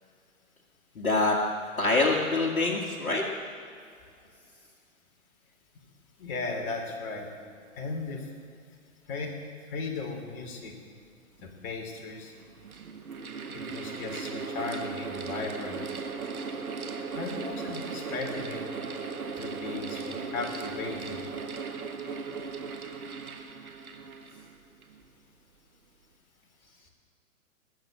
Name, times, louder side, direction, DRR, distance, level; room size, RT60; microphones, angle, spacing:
voice 1, 1.0-1.4 1.8-3.2, left 2 dB, 75° left, -4 dB, 2.1 m, -25 dB
voice 2, 6.2-7.3 7.8-8.3 9.1-9.3 9.7-10.7 11.4-12.3 13.5-15.8 17.1-18.6 19.4-21.2, left 3 dB, 40° left, 0 dB, 3.0 m, -36 dB
Mechanical fan, 11.4-11.5 12.3-25.0, right 4 dB, 80° right, 1.5 m, -37 dB
20.5 x 7.2 x 7.8 m, 2.3 s
figure-of-eight pair, 120°, 42 cm